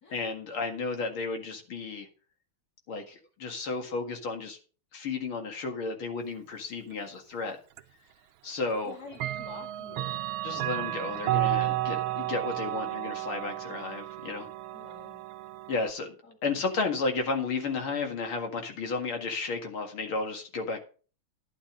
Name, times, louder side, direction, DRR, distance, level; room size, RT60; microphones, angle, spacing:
voice 1, 0.1-2.1 2.9-4.6 4.9-7.6 8.4-8.9 10.4-14.5 15.7-16.1 16.4-20.8, left 4 dB, 80° left, 4 dB, 2.8 m, -33 dB
Clock, 7.8-7.9 9.1-15.9, right 15 dB, 80° right, 1.5 m, -32 dB
voice 2, 8.9-10.2 14.7-15.2 16.2-16.6, left 4 dB, 45° left, 0 dB, 2.7 m, -48 dB
12.0 x 9.7 x 3.8 m, 0.37 s
omnidirectional pair, 2.3 m